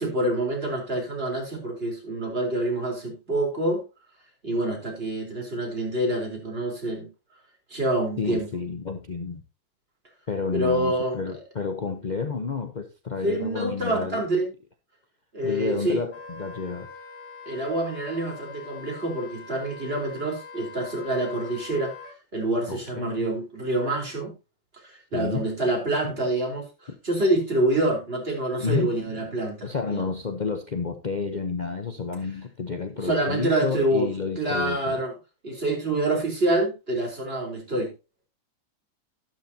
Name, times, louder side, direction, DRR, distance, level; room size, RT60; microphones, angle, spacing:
voice 1, 0.0-3.8 4.4-7.1 7.7-8.5 10.5-11.2 13.2-14.5 15.3-16.0 17.5-21.9 22.3-24.3 24.8-30.0 33.0-34.1 34.4-35.1 35.4-37.9, right 1 dB, 30° right, 4.1 m, -26 dB
voice 2, 8.2-9.4 10.3-14.2 15.4-16.9 22.7-23.3 25.1-25.5 26.0-26.1 26.9-27.0 28.6-29.0 29.6-35.0, left 5 dB, 50° left, 0.5 m, -30 dB
Wind instrument woodwind instrument, 16.1-22.2, left 5 dB, 90° left, 3.4 m, -43 dB
12.0 x 12.0 x 2.8 m
omnidirectional pair, 2.2 m